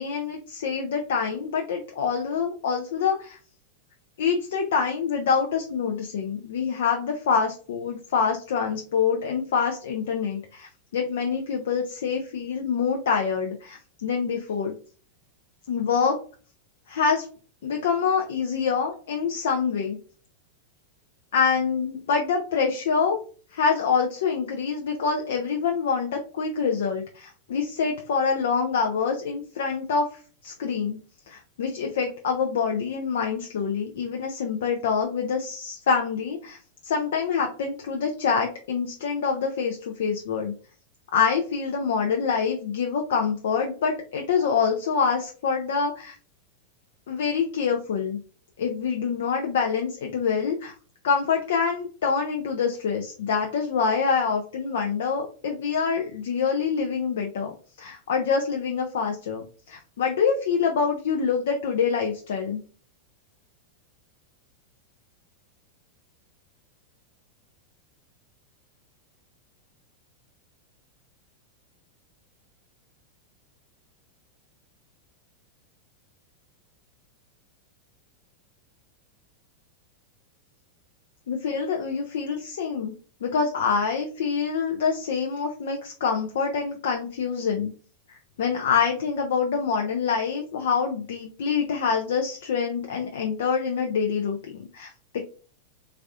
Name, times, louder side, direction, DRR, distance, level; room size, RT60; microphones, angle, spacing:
voice 1, 0.0-3.4 4.2-14.7 15.7-16.2 16.9-17.3 17.6-20.0 21.3-23.2 23.5-30.1 30.4-31.0 31.3-40.5 41.1-46.1 47.1-48.2 48.6-50.7 51.0-62.6 81.3-82.9 83.2-87.7 88.1-95.2, left 6 dB, 60° left, 2 dB, 0.5 m, -26 dB
3.5 x 3.4 x 2.3 m, 0.39 s
figure-of-eight pair, 90°, 0 cm